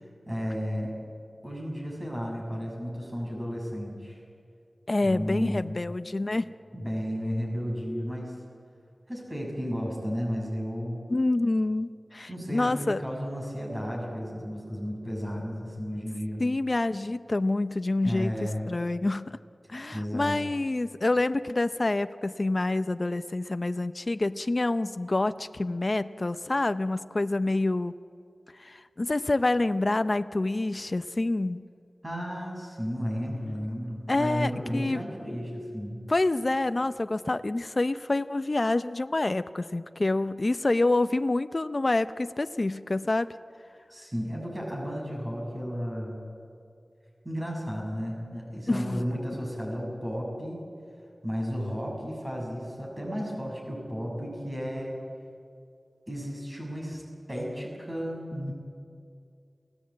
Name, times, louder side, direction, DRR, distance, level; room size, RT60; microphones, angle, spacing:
voice 1, 0.3-0.9 1.4-4.2 5.0-5.8 6.7-8.4 9.1-11.0 12.3-16.4 18.0-18.7 19.9-20.4 32.0-36.0 43.9-46.2 47.2-50.7 51.2-54.9 56.1-57.0 57.3-58.5, equal, 25° right, -1 dB, 6.8 m, -33 dB
voice 2, 4.9-6.4 11.1-13.0 16.4-19.4 19.7-27.9 28.6-31.6 34.1-35.0 36.1-43.3 48.7-49.2, left 2 dB, 45° left, 12 dB, 0.6 m, -27 dB
29.5 x 17.0 x 8.7 m, 2.4 s
wide cardioid pair, 60°, 0 cm